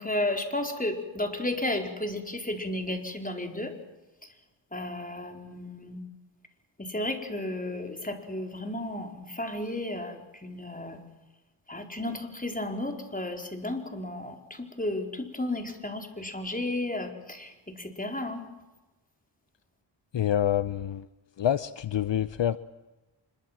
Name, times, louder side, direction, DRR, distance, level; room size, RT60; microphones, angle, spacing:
voice 1, 0.0-3.7 4.7-6.0 6.8-11.0 11.7-18.5, left 1 dB, 15° left, 4 dB, 4.4 m, -33 dB
voice 2, 20.1-21.0 21.4-22.6, left 10 dB, 65° left, 14 dB, 0.9 m, -26 dB
25.5 x 22.5 x 7.5 m, 1.1 s
cardioid pair, 65°, 47 cm